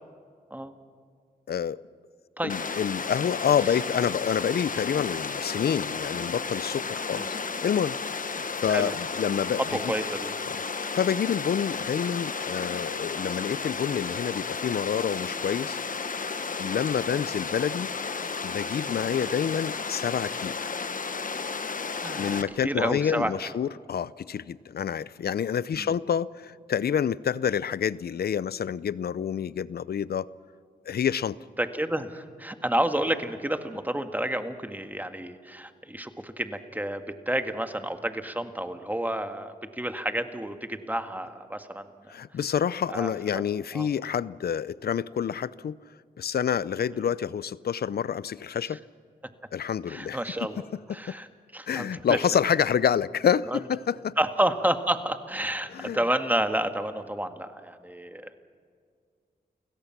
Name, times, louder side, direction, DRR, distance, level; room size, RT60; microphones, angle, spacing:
voice 1, 1.5-1.8 2.4-7.4 7.6-9.8 10.5-10.6 10.9-15.8 16.6-17.9 18.4-20.6 22.2-30.3 30.9-31.4 42.1-45.8 46.2-48.8 49.5-50.2 51.1-51.2 51.7-54.1 55.7-56.0, left 8 dB, 70° left, 19 dB, 0.6 m, -28 dB
Water, 2.5-22.4, left 5 dB, 50° left, 1.2 m, -33 dB
voice 2, 9.7-10.3 22.0-23.3 25.8-25.9 31.6-42.1 42.9-43.4 43.7-43.9 48.7-48.8 49.9-50.6 50.9-51.3 51.5-52.4 53.5-53.6 54.2-58.4, right 1 dB, 10° right, 7 dB, 1.8 m, -30 dB
30.0 x 17.0 x 6.0 m, 2.2 s
cardioid pair, 55°, 17 cm